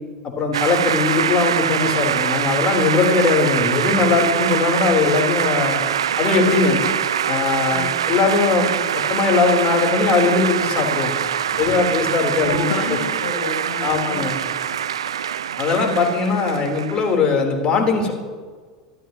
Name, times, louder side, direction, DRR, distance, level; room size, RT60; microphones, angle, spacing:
voice 1, 0.4-5.8 6.2-6.8 7.3-8.7 9.1-11.1 11.6-12.6 13.8-14.4 15.6-18.1, left 4 dB, 35° left, 1 dB, 4.1 m, -20 dB
sound 1, 0.5-17.2, right 9 dB, 80° right, 0.5 m, -23 dB
voice 2, 12.4-14.2, left 5 dB, 65° left, -4 dB, 4.1 m, -29 dB
26.0 x 14.0 x 3.2 m, 1.5 s
hypercardioid pair, 85°, 3 cm